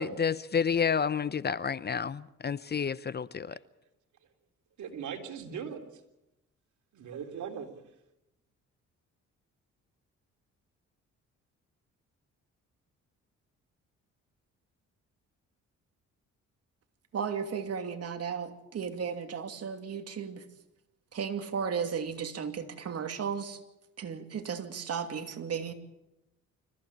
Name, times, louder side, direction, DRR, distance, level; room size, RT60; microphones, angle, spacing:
voice 1, 0.0-3.6, left 6 dB, 35° left, 0.7 m, -30 dB
voice 2, 4.8-5.8 6.9-7.7, right 7 dB, 75° right, 3.5 m, -39 dB
voice 3, 17.1-20.4 21.1-23.6 24.0-25.7, right 6 dB, 55° right, 2.7 m, -35 dB
26.0 x 15.0 x 8.7 m
cardioid pair, 90°, 30 cm